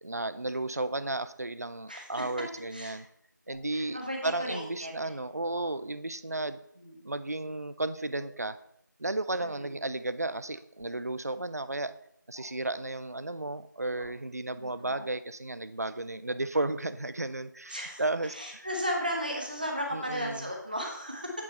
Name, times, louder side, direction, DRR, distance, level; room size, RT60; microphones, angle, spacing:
voice 1, 0.0-3.0 3.5-6.6 7.0-8.6 9.0-11.9 12.3-18.7 19.9-20.5, right 2 dB, 55° right, 12 dB, 0.4 m, -33 dB
voice 2, 1.9-2.2 2.7-3.0 3.7-5.2 6.8-7.1 9.4-9.8 14.6-15.1 17.7-21.3, equal, 25° right, 0 dB, 1.1 m, -35 dB
sound 1, 3.5-3.7 4.5-4.7 5.5-5.7 8.1-8.3 10.7-11.0 12.3-12.5 14.0-14.2 14.8-15.1 16.3-16.4, left 1 dB, 35° left, 1.1 m, -49 dB
8.4 x 4.0 x 4.3 m, 0.74 s
figure-of-eight pair, 175°, 10 cm